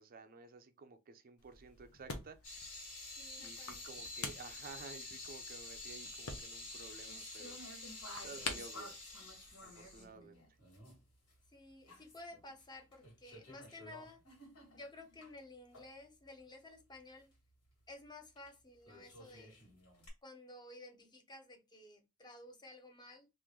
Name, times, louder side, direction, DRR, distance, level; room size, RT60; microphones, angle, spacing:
voice 1, 0.0-2.4 3.4-7.6 8.2-9.0 9.6-10.4, right 4 dB, 40° right, 0.4 m, -53 dB
sound 1, 1.4-10.1, left 3 dB, 70° left, 0.8 m, -49 dB
sound 2, 2.4-11.0 11.3-11.4 11.9-12.6 12.9-15.3 15.7-15.9 18.4-18.5 18.8-20.1, left 2 dB, 85° left, 1.7 m, -49 dB
voice 2, 3.2-4.0 10.2-10.4 11.5-14.2 14.7-17.3 17.9-19.6 20.2-23.3, left 2 dB, 20° left, 0.6 m, -54 dB
3.1 x 2.5 x 3.6 m
head